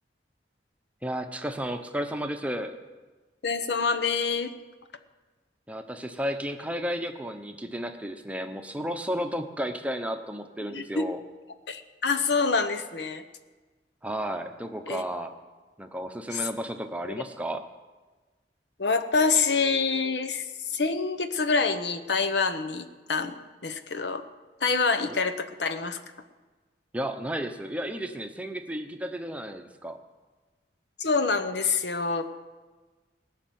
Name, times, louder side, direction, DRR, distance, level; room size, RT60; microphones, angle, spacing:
voice 1, 1.0-2.8 5.7-11.2 14.0-15.3 15.8-17.6 25.1-25.2 26.9-30.0, equal, 10° right, 6 dB, 0.8 m, -33 dB
voice 2, 3.4-4.6 10.7-11.1 11.7-13.2 14.9-15.0 16.3-16.5 17.0-17.2 18.8-20.5 20.7-23.3 23.6-24.2 24.6-26.0 31.0-32.4, left 4 dB, 75° left, 10 dB, 0.9 m, -26 dB
19.0 x 6.6 x 9.3 m, 1.3 s
head